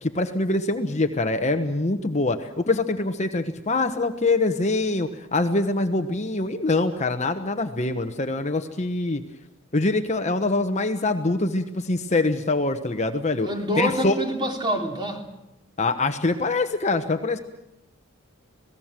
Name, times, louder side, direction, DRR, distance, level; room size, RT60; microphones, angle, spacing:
voice 1, 0.0-9.2 9.7-13.5 13.8-14.1 15.8-17.4, left 2 dB, 35° left, 7 dB, 1.1 m, -24 dB
voice 2, 13.4-15.2, equal, 20° right, 3 dB, 3.3 m, -26 dB
27.0 x 18.0 x 7.6 m, 0.88 s
head